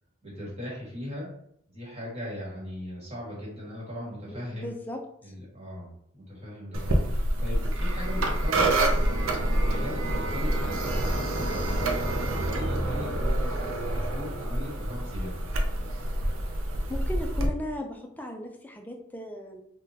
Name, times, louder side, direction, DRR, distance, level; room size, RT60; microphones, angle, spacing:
voice 1, 0.2-1.3 1.7-4.7 5.2-15.4, left 1 dB, 30° right, -6 dB, 1.5 m, -39 dB
voice 2, 4.2-5.3 16.9-19.6, left 1 dB, 10° left, 2 dB, 0.3 m, -37 dB
sound 1, 6.7-17.5, right 1 dB, 70° right, 0.5 m, -27 dB
3.6 x 2.2 x 2.7 m, 0.71 s
head